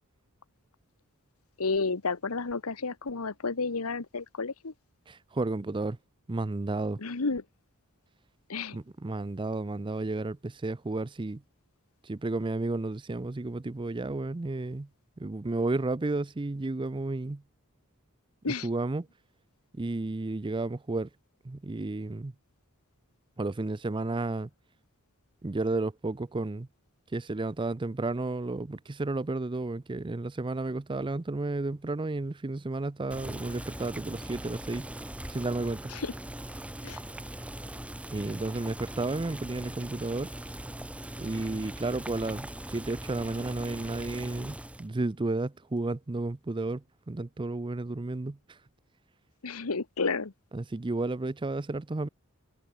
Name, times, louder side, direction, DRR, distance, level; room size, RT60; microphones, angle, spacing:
voice 1, 1.6-4.7 7.0-7.4 8.5-8.8 18.4-18.7 35.9-36.1 36.8-37.0 49.4-50.3, left 4 dB, 75° left, 1.2 m, -31 dB
voice 2, 5.1-6.0 6.3-7.0 8.7-11.4 12.0-14.9 15.2-17.4 18.5-19.1 19.7-21.1 21.4-22.3 23.4-24.5 25.4-26.7 27.1-34.9 35.3-35.9 38.1-40.3 41.2-48.6 50.5-52.1, right 2 dB, 20° right, 0.5 m, -32 dB
Boiling, 33.1-44.9, right 1 dB, 5° right, 1.0 m, -41 dB
head